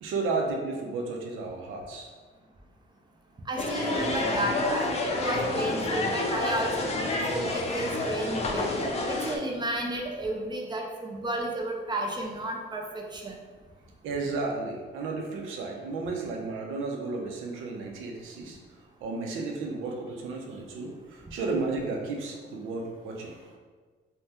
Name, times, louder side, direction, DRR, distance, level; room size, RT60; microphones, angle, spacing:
voice 1, 0.0-2.1 14.0-18.6 19.0-23.4, right 3 dB, 85° right, 1 dB, 0.6 m, -33 dB
voice 2, 3.5-4.9 5.2-8.7 9.1-13.4, right 1 dB, 20° right, 1 dB, 0.5 m, -32 dB
sound 1, 3.6-9.4, left 2 dB, 35° left, 0.4 m, -29 dB
2.7 x 2.2 x 3.4 m, 1.4 s
cardioid pair, 90°, 20 cm